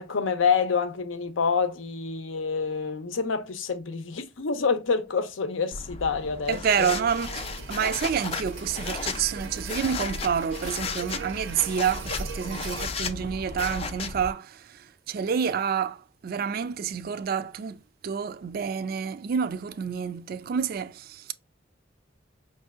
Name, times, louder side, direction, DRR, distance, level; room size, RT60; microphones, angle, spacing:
voice 1, 0.0-6.9, left 5 dB, 90° left, 0.6 m, -27 dB
sound 1, 5.7-14.3, left 4 dB, 30° left, 0.4 m, -35 dB
voice 2, 6.5-21.3, right 7 dB, 50° right, 0.3 m, -28 dB
sound 2, 7.1-12.9, right 6 dB, 80° right, 0.6 m, -41 dB
5.4 x 2.7 x 2.4 m
head